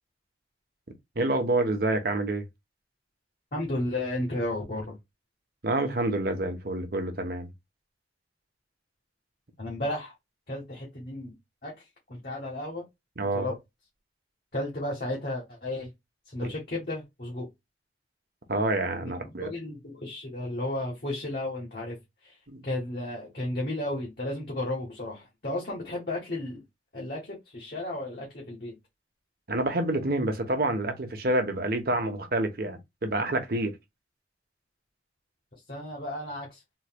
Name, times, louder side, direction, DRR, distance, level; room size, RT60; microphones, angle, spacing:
voice 1, 1.2-2.4 5.6-7.5 13.2-13.5 18.5-19.5 22.5-22.6 29.5-33.7, right 2 dB, 55° right, 1.0 m, -28 dB
voice 2, 3.5-5.0 9.6-10.1 10.5-11.3 11.6-12.9 13.3-13.6 14.5-15.9 16.3-17.5 19.0-22.4 22.6-26.6 26.9-28.7 35.7-36.6, left 1 dB, 50° left, 1.5 m, -33 dB
4.0 x 3.2 x 2.2 m
head